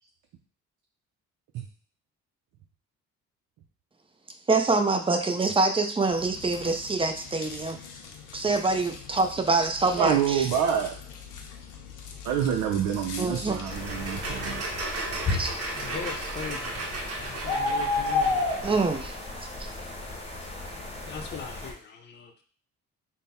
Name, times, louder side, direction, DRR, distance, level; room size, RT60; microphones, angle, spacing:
voice 1, 4.5-7.8 8.3-10.5 13.2-13.7 15.3-15.5 18.6-19.2 19.6-19.7, right 3 dB, 20° right, 6 dB, 0.5 m, -25 dB
sound 1, 6.1-14.6, left 6 dB, 80° left, 0.7 m, -43 dB
voice 2, 10.0-11.0 12.2-14.6, right 9 dB, 80° right, 3 dB, 0.5 m, -27 dB
sound 2, 13.4-19.1, right 2 dB, 50° right, 0.9 m, -36 dB
sound 3, 13.7-21.7, left 3 dB, 20° left, 1.0 m, -32 dB
voice 3, 15.7-16.8 17.2-18.5 21.1-22.4, left 7 dB, 35° left, 4 dB, 0.5 m, -40 dB
3.4 x 2.1 x 4.1 m, 0.43 s
cardioid pair, 90°, 30 cm